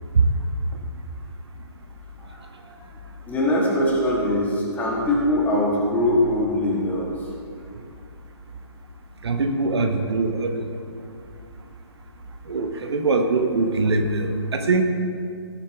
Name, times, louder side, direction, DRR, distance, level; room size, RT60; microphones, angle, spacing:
voice 1, 2.2-2.9 3.3-7.3, left 1 dB, 10° left, -3 dB, 1.9 m, -22 dB
voice 2, 9.2-10.5 12.5-14.8, right 3 dB, 70° right, 5 dB, 1.2 m, -22 dB
17.5 x 7.3 x 3.5 m, 2.4 s
figure-of-eight pair, 135°, 14 cm